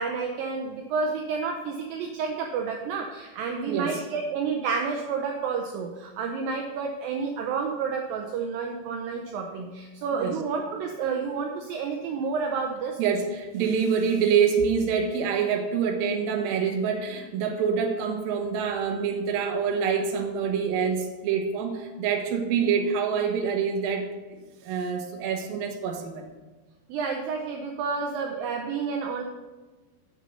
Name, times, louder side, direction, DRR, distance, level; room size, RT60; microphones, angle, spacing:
voice 1, 0.0-13.0 26.9-29.2, right 5 dB, 90° right, 2 dB, 2.0 m, -30 dB
voice 2, 3.7-4.0 10.2-10.3 13.0-26.1, right 6 dB, 70° right, 3 dB, 2.5 m, -26 dB
8.1 x 6.2 x 5.4 m, 1.2 s
omnidirectional pair, 4.8 m